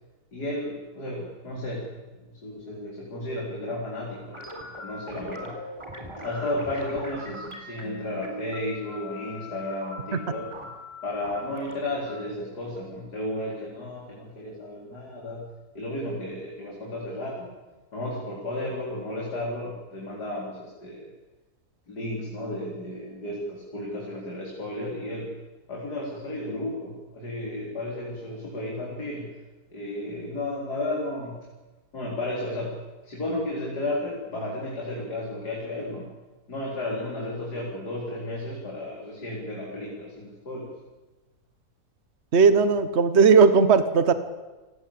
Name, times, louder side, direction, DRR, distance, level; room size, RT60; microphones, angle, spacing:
voice 1, 0.3-5.6 6.2-10.5 11.0-15.4 15.7-17.5 17.9-21.1 21.9-25.3 25.7-29.3 29.7-31.4 31.9-32.8 33.0-36.1 36.5-40.7, left 1 dB, 85° left, -3 dB, 4.8 m, -33 dB
sound 1, 4.3-13.3, equal, 15° right, 4.0 m, -41 dB
voice 2, 42.3-44.1, right 5 dB, 45° right, 12 dB, 1.4 m, -17 dB
28.5 x 17.0 x 8.7 m, 1.2 s
omnidirectional pair, 1.7 m